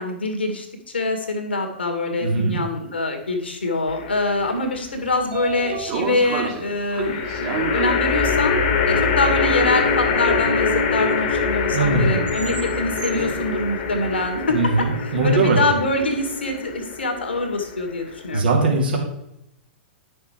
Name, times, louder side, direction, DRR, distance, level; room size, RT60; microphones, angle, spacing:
voice 1, 0.0-8.6 8.9-18.5, left 2 dB, 75° left, 5 dB, 2.0 m, -25 dB
voice 2, 2.2-2.6 11.7-12.2 14.5-15.6 18.3-19.0, right 3 dB, 65° right, -1 dB, 2.6 m, -20 dB
sound 1, 3.9-4.5 7.0-18.4, left 4 dB, 50° left, 1.6 m, -24 dB
Train / Sliding door, 4.7-14.9, right 5 dB, 40° right, 2.3 m, -33 dB
10.0 x 6.5 x 4.7 m, 0.82 s
figure-of-eight pair, 105°, 6 cm